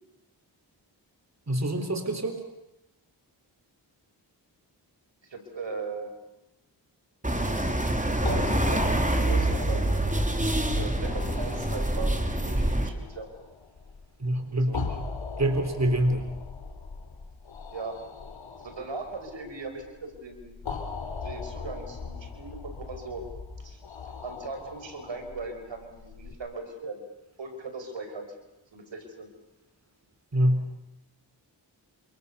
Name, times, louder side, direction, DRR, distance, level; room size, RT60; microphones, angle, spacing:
voice 1, 1.5-2.4 14.2-15.0 15.4-16.3 30.3-30.7, right 1 dB, 35° right, 6 dB, 3.9 m, -25 dB
voice 2, 5.2-6.1 7.3-7.8 8.2-9.8 10.4-13.3 14.7-14.9 17.7-18.0 18.6-20.6 21.2-23.2 23.6-23.8 24.2-27.0 27.4-28.3 28.7-29.3, right 3 dB, 75° right, 6 dB, 5.5 m, -39 dB
sound 1, 7.2-12.9, right 1 dB, 15° right, 3.5 m, -26 dB
sound 2, 8.2-26.3, left 5 dB, 90° left, 3.7 m, -39 dB
29.0 x 27.0 x 6.9 m, 0.90 s
cardioid pair, 50°, 45 cm